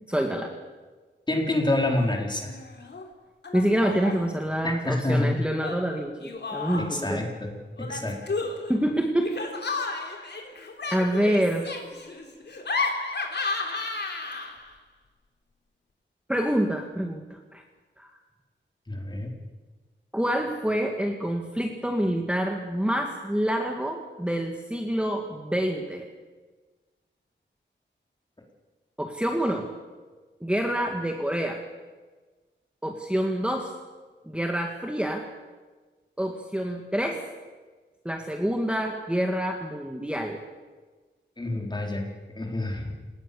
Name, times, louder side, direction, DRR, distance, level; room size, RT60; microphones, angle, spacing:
voice 1, 0.1-0.5 3.5-7.2 8.7-9.3 10.9-11.7 16.3-17.6 18.0-18.2 20.1-26.1 29.0-29.7 30.4-31.6 32.8-33.7 34.3-35.3 36.2-37.2 38.1-40.4, equal, 5° right, 3 dB, 1.9 m, -27 dB
voice 2, 1.3-2.5 4.6-5.3 6.9-8.2 18.9-19.3 41.4-42.0 42.3-43.0, left 1 dB, 20° left, 0 dB, 4.5 m, -27 dB
Laughter, 1.7-2.2 2.4-3.0 3.4-4.3 5.6-7.1 7.8-14.7, left 3 dB, 60° left, 3.7 m, -33 dB
28.5 x 18.5 x 7.1 m, 1.3 s
wide cardioid pair, 125°, 20 cm